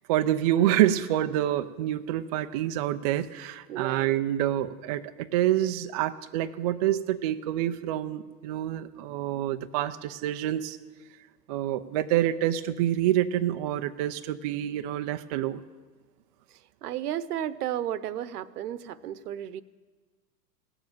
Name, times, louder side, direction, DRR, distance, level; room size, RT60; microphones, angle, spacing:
voice 1, 0.1-10.8 11.5-15.6, right 12 dB, 30° right, 7 dB, 0.3 m, -27 dB
voice 2, 3.7-4.1 16.5-19.6, right 11 dB, 70° right, 16 dB, 0.9 m, -33 dB
17.0 x 7.3 x 9.0 m, 1.4 s
hypercardioid pair, 120°, 48 cm